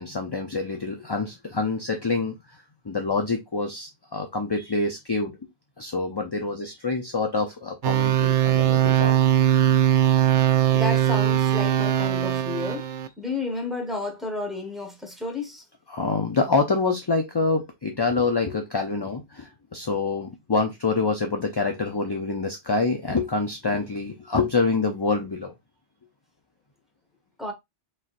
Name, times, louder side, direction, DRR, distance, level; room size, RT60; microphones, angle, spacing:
voice 1, 0.0-2.4 2.8-5.3 5.8-9.2 15.9-25.5, left 3 dB, 30° left, 0.5 m, -26 dB
sound 1, 7.8-13.1, right 11 dB, 85° right, 0.9 m, -20 dB
voice 2, 10.7-12.8 13.2-15.6 27.4-27.5, left 2 dB, ahead, 1.3 m, -31 dB
4.4 x 3.7 x 2.5 m
omnidirectional pair, 1.2 m